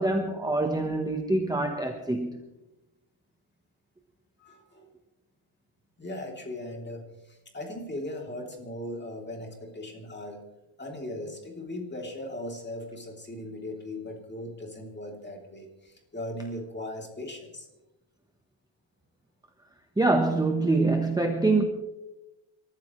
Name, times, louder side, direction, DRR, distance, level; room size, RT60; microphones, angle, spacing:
voice 1, 0.0-2.4 20.0-21.6, right 2 dB, 10° right, 1.1 m, -25 dB
voice 2, 4.4-4.9 6.0-10.4 10.8-17.7, left 1 dB, 20° left, 3.2 m, -38 dB
28.0 x 14.0 x 3.2 m
wide cardioid pair, 150°, 49 cm